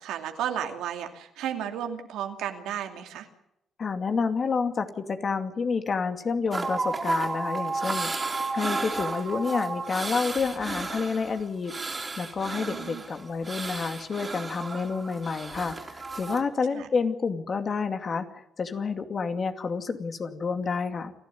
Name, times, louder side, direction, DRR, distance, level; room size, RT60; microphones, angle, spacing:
voice 1, 0.0-3.3 12.5-13.0 16.7-16.9, right 9 dB, 90° right, 5 dB, 2.7 m, -33 dB
voice 2, 3.8-11.7 12.2-21.1, left 5 dB, 45° left, 7 dB, 2.4 m, -29 dB
sound 1, 6.5-16.4, right 3 dB, 30° right, 3.7 m, -33 dB
29.5 x 12.0 x 9.3 m, 0.83 s
cardioid pair, 90°, 0 cm